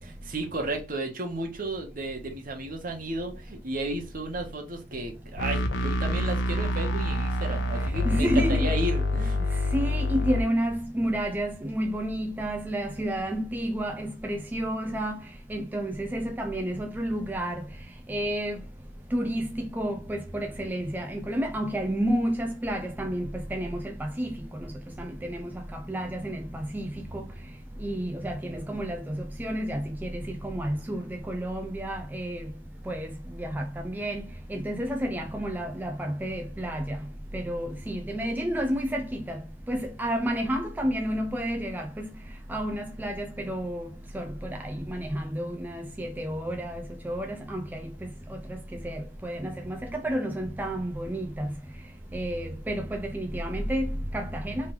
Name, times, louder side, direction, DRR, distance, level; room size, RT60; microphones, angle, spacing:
voice 1, 0.0-9.5, right 2 dB, 50° right, 1.1 m, -33 dB
sound 1, 5.4-10.4, left 1 dB, 75° left, 0.8 m, -27 dB
voice 2, 7.8-8.7 9.7-15.2 15.5-17.6 18.1-18.6 19.1-24.7 25.0-27.3 27.8-32.5 32.9-37.0 37.3-39.4 39.7-42.1 42.5-47.9 48.8-51.5 52.1-54.7, equal, 10° right, 0.3 m, -30 dB
3.3 x 3.1 x 3.3 m
head